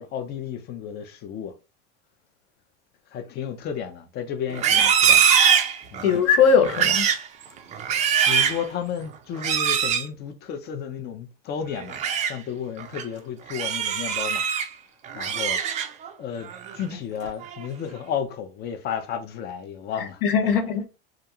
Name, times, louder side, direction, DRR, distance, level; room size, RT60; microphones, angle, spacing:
voice 1, 0.0-1.5 3.1-5.2 5.9-6.1 8.2-12.0 12.3-14.4 15.1-15.6 16.2-20.2, left 8 dB, 35° left, 0.5 m, -33 dB
Livestock farm animals working animals, 4.5-6.2 6.6-7.3 7.7-8.6 9.4-10.1 11.7-12.3 12.8-13.0 13.5-14.7 15.0-16.1 16.5-16.8 17.2-17.7, right 8 dB, 25° right, 0.3 m, -22 dB
voice 2, 6.0-7.1 20.2-20.9, left 6 dB, 70° left, 0.8 m, -19 dB
2.5 x 2.2 x 2.9 m
supercardioid pair, 115°, 29 cm